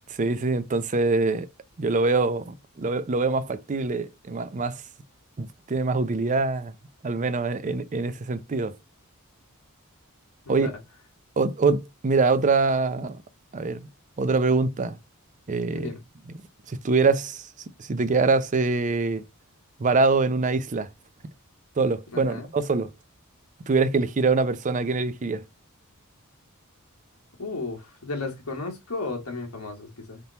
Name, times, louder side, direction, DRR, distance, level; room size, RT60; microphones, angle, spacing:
voice 1, 0.2-1.5 1.8-4.8 5.4-6.7 7.0-8.7 10.5-10.7 11.4-13.2 13.5-13.8 14.2-15.0 15.5-15.9 16.7-17.5 17.8-19.2 19.8-20.9 21.8-22.9 23.7-25.4, right 3 dB, 35° right, 0.5 m, -24 dB
voice 2, 22.1-22.5 27.4-30.2, left 3 dB, 90° left, 1.4 m, -34 dB
3.7 x 2.9 x 3.9 m
head